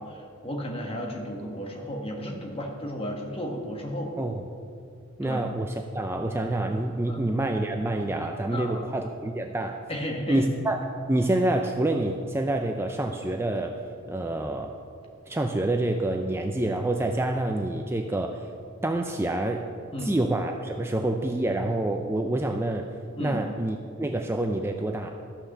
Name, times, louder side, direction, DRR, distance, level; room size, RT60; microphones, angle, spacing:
voice 1, 0.0-4.1 5.2-5.4 7.1-7.2 8.5-8.9 9.9-10.4 19.9-20.2 23.2-23.4, equal, 25° left, 1 dB, 1.5 m, -33 dB
voice 2, 5.2-9.8 10.3-10.8 11.1-13.8 14.1-14.7 15.3-18.4 18.8-19.7 20.0-22.9 23.2-25.1, right 1 dB, 10° right, 3 dB, 0.4 m, -27 dB
13.5 x 5.9 x 6.7 m, 2.4 s
head